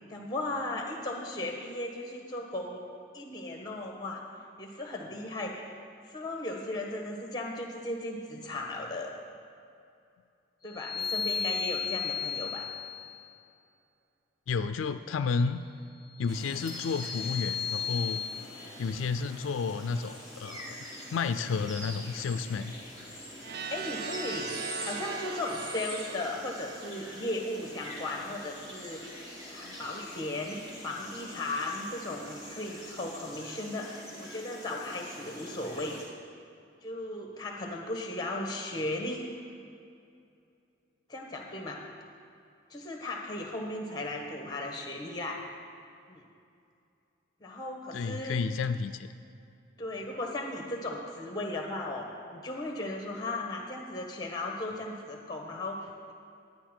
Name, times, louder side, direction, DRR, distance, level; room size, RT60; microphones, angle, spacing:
voice 1, 0.1-2.8 3.1-4.2 4.6-5.7 6.0-9.1 10.6-12.7 23.7-24.5 24.8-29.0 29.5-36.0 36.8-39.2 41.1-41.8 42.7-45.4 46.1-46.2 47.4-48.4 49.8-56.1, left 2 dB, 20° left, 1 dB, 1.2 m, -36 dB
sound 1, 10.7-13.2 16.2-18.3, left 7 dB, 40° left, 0.8 m, -34 dB
voice 2, 14.5-15.6 16.2-18.2 18.8-20.7 21.1-22.7 29.6-29.8 47.9-49.1, left 5 dB, 80° left, 10 dB, 0.4 m, -31 dB
sound 2, 16.3-36.1, equal, 20° right, 1.7 m, -45 dB
sound 3, 23.4-28.3, right 6 dB, 55° right, 0.4 m, -40 dB
11.5 x 9.6 x 4.4 m, 2.4 s
head